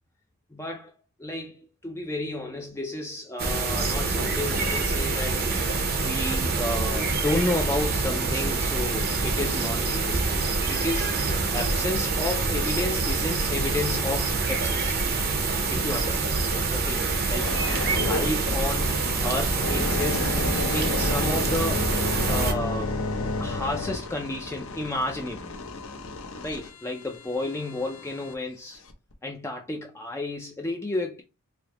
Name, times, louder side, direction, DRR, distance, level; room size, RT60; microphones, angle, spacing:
voice 1, 0.5-0.9 1.2-5.5 6.0-15.0 15.7-16.3 16.7-20.4 20.7-22.0 22.3-23.0 23.4-25.5 26.4-28.8 29.2-31.2, left 2 dB, 10° left, 0.4 m, -32 dB
sound 1, 3.4-22.5, right 3 dB, 45° right, 0.6 m, -26 dB
sound 2, 17.4-28.3 28.9-29.1, left 3 dB, 65° left, 0.7 m, -32 dB
4.8 x 2.0 x 2.8 m
head